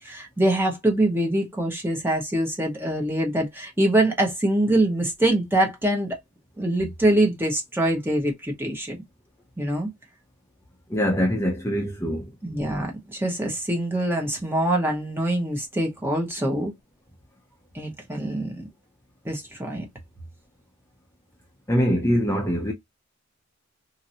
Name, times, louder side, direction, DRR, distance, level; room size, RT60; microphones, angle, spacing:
voice 1, 0.0-6.2 6.6-9.0 9.6-9.9 12.4-16.7 17.7-18.6 19.2-19.8, right 1 dB, 10° right, 1.1 m, -24 dB
voice 2, 10.9-12.3 21.7-22.7, equal, 15° left, 0.7 m, -23 dB
2.9 x 2.7 x 2.7 m
head